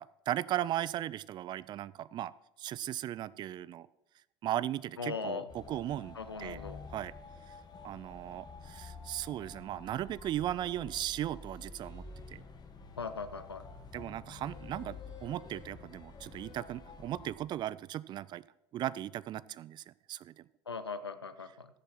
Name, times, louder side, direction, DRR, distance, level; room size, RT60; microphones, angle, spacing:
voice 1, 0.0-2.3 2.6-3.9 4.4-6.6 6.9-7.1 7.5-7.6 7.8-12.4 13.9-18.4 18.7-20.5, right 12 dB, 35° right, 21 dB, 0.3 m, -37 dB
voice 2, 5.0-5.5 6.1-6.8 13.0-13.6 20.7-21.7, left 5 dB, 85° left, 11 dB, 0.5 m, -39 dB
sound 1, 5.5-17.4, left 4 dB, 30° left, 1.7 m, -49 dB
15.0 x 6.8 x 4.3 m, 0.95 s
figure-of-eight pair, 65°, 13 cm